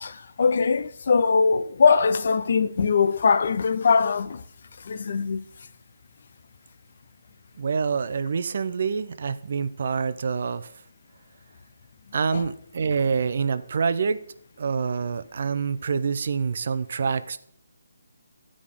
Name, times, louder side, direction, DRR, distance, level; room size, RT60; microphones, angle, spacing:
voice 1, 0.0-4.4 4.8-5.4 12.3-12.4, left 5 dB, 55° left, 0.5 m, -21 dB
voice 2, 7.6-10.7 12.1-14.2 14.6-17.4, right 5 dB, 50° right, 0.5 m, -26 dB
14.0 x 4.9 x 3.6 m
hypercardioid pair, 160°, 0 cm